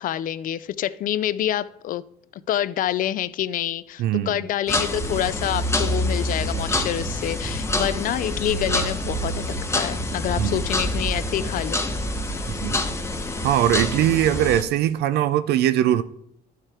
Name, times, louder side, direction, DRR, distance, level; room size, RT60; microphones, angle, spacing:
voice 1, 0.0-2.0 2.3-9.4 9.7-11.9, left 12 dB, 55° left, 0.4 m, -27 dB
voice 2, 4.0-4.4 10.4-10.6 12.5-12.8 13.4-16.0, right 12 dB, 75° right, 0.5 m, -21 dB
sound 1, 4.7-14.6, left 1 dB, 15° left, 0.8 m, -26 dB
sound 2, 6.4-13.5, right 6 dB, 25° right, 0.6 m, -45 dB
11.5 x 4.9 x 4.4 m
cardioid pair, 110°, 17 cm